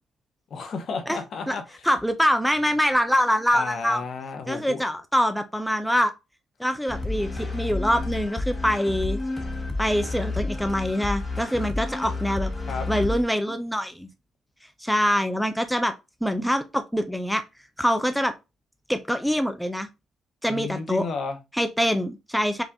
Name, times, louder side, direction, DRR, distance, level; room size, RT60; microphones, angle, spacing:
voice 1, 0.5-1.6 3.5-4.8 12.7-12.9 20.5-21.4, left 4 dB, 60° left, 1.0 m, -32 dB
voice 2, 1.1-1.6 1.8-4.0 4.5-6.1 6.6-9.2 9.8-12.5 12.9-14.1 14.8-15.9 16.2-17.4 17.8-18.3 18.9-19.9 20.4-21.1 21.5-22.6, equal, ahead, 0.5 m, -24 dB
sound 1, 6.9-13.2, left 3 dB, 25° left, 1.1 m, -30 dB
4.9 x 2.5 x 3.5 m
cardioid pair, 90°, 0 cm